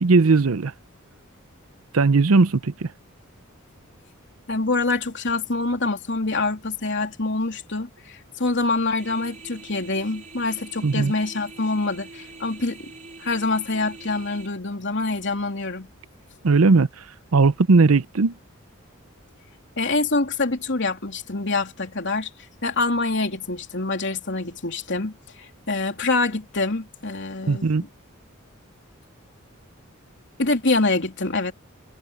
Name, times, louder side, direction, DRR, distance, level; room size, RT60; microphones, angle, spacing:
voice 1, 0.0-0.7 1.9-2.9 10.8-11.1 16.4-16.9 17.3-18.3 27.5-27.8, right 4 dB, 80° right, 0.7 m, -18 dB
voice 2, 4.5-12.9 13.2-15.9 19.8-22.3 22.6-27.9 30.4-31.5, left 3 dB, 60° left, 3.3 m, -25 dB
sound 1, 8.9-14.5, right 3 dB, 35° right, 3.6 m, -44 dB
head